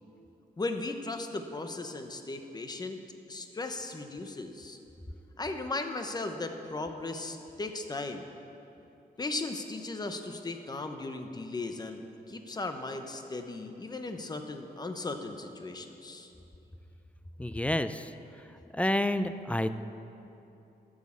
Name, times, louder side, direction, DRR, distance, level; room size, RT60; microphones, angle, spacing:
voice 1, 0.6-3.0 3.3-4.8 5.4-8.3 9.2-16.3, left 2 dB, 25° left, 6 dB, 0.9 m, -37 dB
voice 2, 17.4-18.1 18.7-19.7, left 1 dB, 10° left, 11 dB, 0.4 m, -29 dB
12.0 x 7.3 x 7.2 m, 2.9 s
wide cardioid pair, 125°, 16 cm